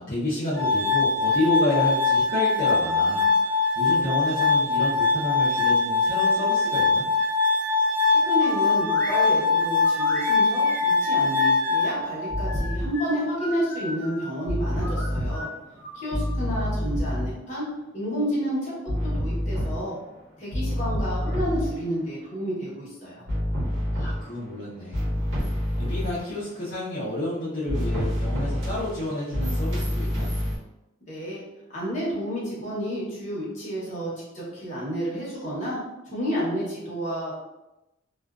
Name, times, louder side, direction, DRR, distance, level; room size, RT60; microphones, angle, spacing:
voice 1, 0.0-7.1 23.9-25.0 25.8-30.3, left 1 dB, 55° left, -10 dB, 0.6 m, -30 dB
Glass, 0.6-12.6, left 4 dB, 40° right, 0.6 m, -22 dB
voice 2, 8.1-15.5 15.9-17.7 17.9-18.7 19.0-20.0 20.4-23.2 31.1-31.4 31.7-35.8 36.1-37.3, equal, 35° left, -7 dB, 1.0 m, -30 dB
sound 1, 8.4-9.2 9.8-11.9 12.5-14.3 14.8-16.7, left 1 dB, 10° left, 0.5 m, -37 dB
sound 2, 12.3-13.0 14.5-15.5 16.1-17.4 18.9-20.1 20.5-21.9 23.3-24.4 24.9-26.3 27.7-30.6, equal, 65° right, 0.9 m, -27 dB
2.4 x 2.3 x 2.3 m, 0.96 s
head